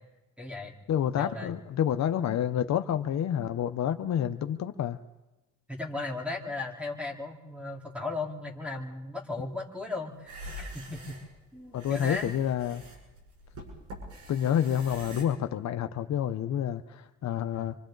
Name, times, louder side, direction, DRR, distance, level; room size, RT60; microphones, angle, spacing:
voice 1, 0.4-0.8 1.1-1.6 5.7-11.2 11.5-12.3 17.5-17.7, left 3 dB, 5° right, 0 dB, 4.0 m, -36 dB
voice 2, 0.9-5.0 11.7-12.8 14.3-17.8, left 9 dB, 65° left, 9 dB, 0.9 m, -29 dB
sound 1, 10.2-15.2, equal, 85° right, 7.6 m, -44 dB
27.0 x 25.5 x 4.0 m, 1.0 s
cardioid pair, 90°, 30 cm